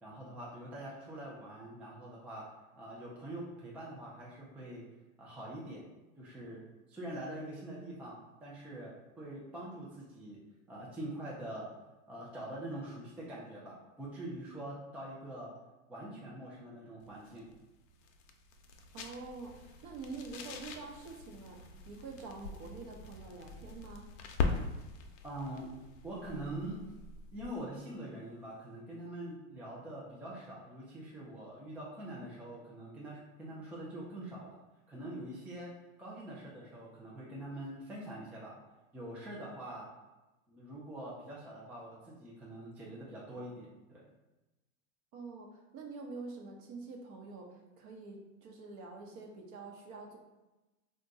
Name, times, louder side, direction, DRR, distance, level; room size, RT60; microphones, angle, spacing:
voice 1, 0.0-2.5 2.8-4.8 5.2-5.8 6.2-6.6 6.9-10.4 10.7-11.7 12.1-15.5 15.9-17.5 25.2-25.8 26.0-26.9 27.3-34.6 34.9-35.7 36.0-38.5 38.9-39.9 40.5-44.0, right 1 dB, 5° right, -6 dB, 0.3 m, -44 dB
sound 1, 17.0-27.7, left 4 dB, 65° left, 0.6 m, -42 dB
voice 2, 18.9-24.1 45.1-50.2, right 3 dB, 45° right, 1 dB, 0.8 m, -46 dB
2.5 x 2.2 x 4.0 m, 1.1 s
hypercardioid pair, 105°, 41 cm